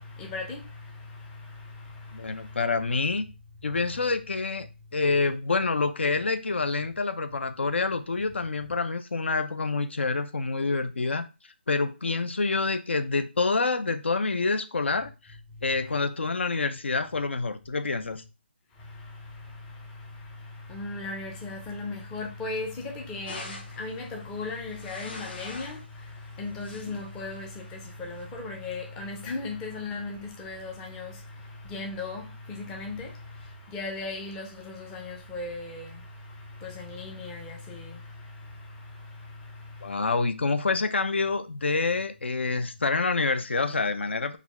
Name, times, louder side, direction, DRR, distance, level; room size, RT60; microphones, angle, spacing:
voice 1, 0.0-2.6 3.7-4.0 15.6-16.0 18.8-40.2, left 3 dB, 10° left, 0.5 m, -38 dB
voice 2, 2.1-3.2 3.6-4.7 4.9-11.2 11.7-15.1 15.6-18.2 39.8-44.4, left 3 dB, 75° left, 0.5 m, -27 dB
sound 1, 23.3-23.9 24.6-25.9 26.3-27.1 27.8-28.2, left 2 dB, 55° left, 1.5 m, -42 dB
4.0 x 2.4 x 4.1 m
figure-of-eight pair, 165°, 6 cm